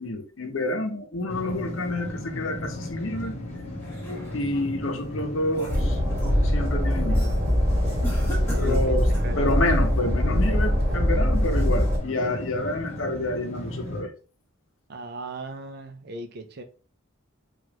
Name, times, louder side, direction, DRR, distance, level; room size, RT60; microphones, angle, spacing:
voice 1, 0.0-3.4 4.3-6.0 6.4-7.3 8.6-9.1 9.4-14.1, left 1 dB, 70° left, 0.7 m, -28 dB
sound 1, 1.3-14.0, left 1 dB, 30° left, 0.9 m, -36 dB
sound 2, 3.5-4.6 5.1-6.4 6.8-7.2 8.0-9.4, equal, 15° left, 1.3 m, -40 dB
Train, 5.7-12.0, equal, 15° right, 1.7 m, -23 dB
voice 2, 8.4-8.9 9.2-9.5 14.9-16.6, equal, 50° right, 0.5 m, -37 dB
4.7 x 2.4 x 2.9 m
head